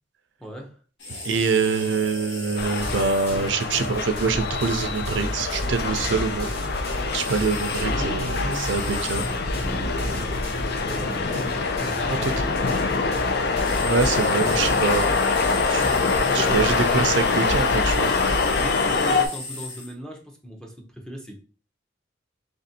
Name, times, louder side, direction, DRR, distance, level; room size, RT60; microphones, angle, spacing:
voice 1, 0.4-0.8 7.8-11.4 11.8-13.3 16.2-17.0 18.6-21.4, equal, 5° left, 2 dB, 0.6 m, -38 dB
sound 1, 1.0-3.3 7.1-7.9 8.5-9.3 13.6-19.9, left 3 dB, 75° left, 1.1 m, -36 dB
voice 2, 1.2-6.5 7.1-9.2 12.1-12.3 13.8-15.2 15.6-15.8 16.3-18.1, right 4 dB, 75° right, 9 dB, 0.5 m, -25 dB
sound 2, 2.6-19.3, left 4 dB, 60° left, 0.5 m, -24 dB
sound 3, 2.8-16.1, equal, 35° left, 1.1 m, -35 dB
3.5 x 2.6 x 4.2 m, 0.39 s
head